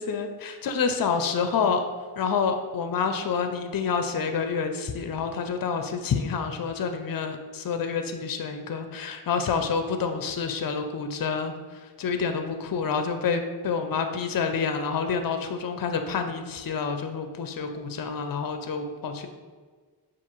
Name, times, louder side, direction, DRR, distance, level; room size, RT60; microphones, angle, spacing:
voice 1, 0.0-1.8 2.2-19.3, left 5 dB, 55° left, 6 dB, 0.5 m, -28 dB
5.7 x 2.4 x 2.9 m, 1.5 s
cardioid pair, 40°, 41 cm